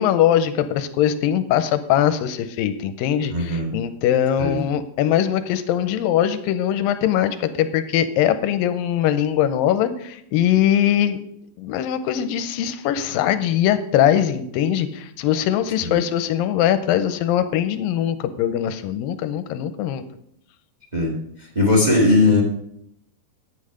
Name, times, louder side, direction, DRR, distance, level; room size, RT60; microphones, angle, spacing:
voice 1, 0.0-11.2 11.6-20.0, left 10 dB, 90° left, 11 dB, 2.4 m, -21 dB
voice 2, 3.3-3.7 4.4-4.6 15.8-16.0 20.9-21.1 21.5-22.4, left 2 dB, 15° right, 0 dB, 1.4 m, -18 dB
9.8 x 8.6 x 5.0 m, 0.71 s
omnidirectional pair, 4.0 m